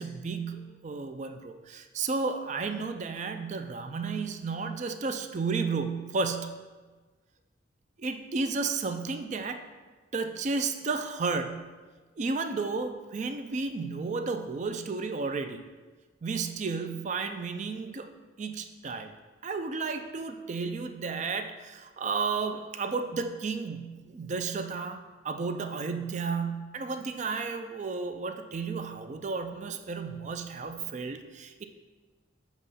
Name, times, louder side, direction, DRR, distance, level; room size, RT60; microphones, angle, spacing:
voice 1, 0.0-6.6 8.0-9.6 10.1-11.7 12.2-15.6 16.2-18.1 18.4-19.1 19.4-31.6, right 4 dB, 40° right, 7 dB, 0.4 m, -33 dB
7.7 x 3.0 x 5.5 m, 1.3 s
head